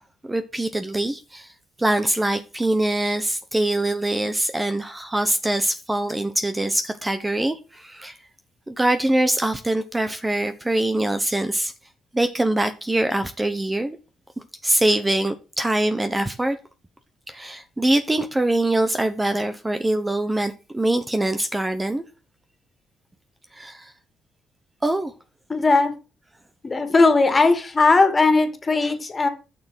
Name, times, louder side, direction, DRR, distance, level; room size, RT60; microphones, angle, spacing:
voice 1, 0.3-1.5 1.8-8.2 8.7-11.7 12.1-14.0 14.6-16.6 17.3-22.0 23.5-23.9 24.8-25.1 28.8-28.9, right 1 dB, 15° right, 1.0 m, -23 dB
voice 2, 25.5-25.9 26.6-29.3, left 3 dB, 30° left, 2.4 m, -18 dB
11.0 x 6.6 x 6.5 m
cardioid pair, 90°, 0 cm